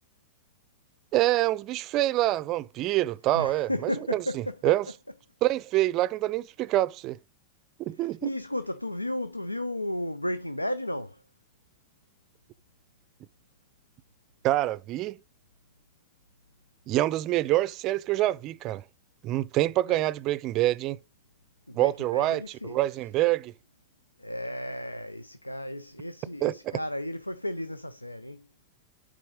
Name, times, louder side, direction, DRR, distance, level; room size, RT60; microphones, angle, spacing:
voice 1, 1.1-4.9 5.4-7.2 7.8-8.3 14.4-15.2 16.9-18.8 19.2-21.0 21.7-23.5 26.4-26.8, right 15 dB, 35° right, 0.4 m, -26 dB
voice 2, 3.3-4.6 8.2-11.2 19.9-20.0 21.7-22.8 24.2-28.5, left 1 dB, 85° left, 0.3 m, -34 dB
8.5 x 3.7 x 5.0 m
figure-of-eight pair, 90°, 0 cm